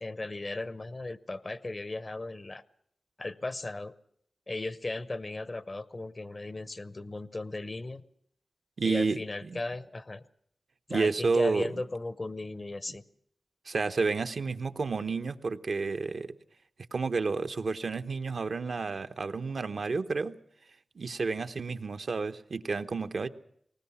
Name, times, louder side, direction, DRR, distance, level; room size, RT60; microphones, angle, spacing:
voice 1, 0.0-2.6 3.2-3.9 4.5-8.0 8.8-10.2 10.9-13.0, left 2 dB, 35° left, 16 dB, 0.8 m, -36 dB
voice 2, 8.8-9.2 9.5-9.6 10.9-11.7 13.7-16.3 16.9-20.3 21.0-23.3, right 4 dB, 60° right, 8 dB, 0.9 m, -30 dB
20.0 x 19.0 x 7.1 m, 0.68 s
wide cardioid pair, 115°, 0 cm